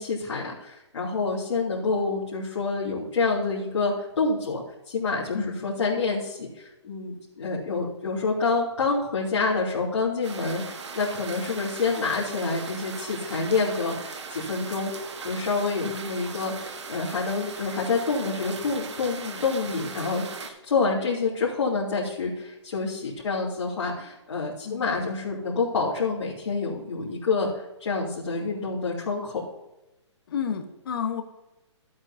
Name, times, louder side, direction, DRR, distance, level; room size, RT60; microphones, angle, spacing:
voice 1, 0.0-14.9 15.2-27.5 27.8-29.4, left 4 dB, 70° left, -8 dB, 3.0 m, -27 dB
sound 1, 10.2-20.5, right 5 dB, 65° right, 1.5 m, -39 dB
voice 2, 24.6-25.0 30.3-31.2, left 7 dB, 50° left, 7 dB, 1.3 m, -31 dB
13.5 x 8.7 x 2.8 m, 0.98 s
hypercardioid pair, 165°, 16 cm